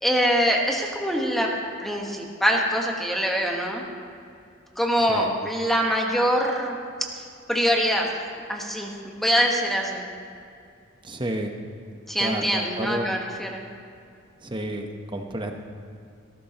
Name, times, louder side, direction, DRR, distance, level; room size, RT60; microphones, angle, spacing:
voice 1, 0.0-1.5 1.8-3.8 4.8-6.8 7.5-8.2 8.5-10.1 12.1-13.6, equal, ahead, 0 dB, 1.3 m, -24 dB
voice 2, 11.0-11.5 12.2-13.1 14.4-14.9 15.1-15.5, right 1 dB, 25° right, 4 dB, 1.0 m, -30 dB
18.0 x 14.5 x 3.0 m, 2.4 s
head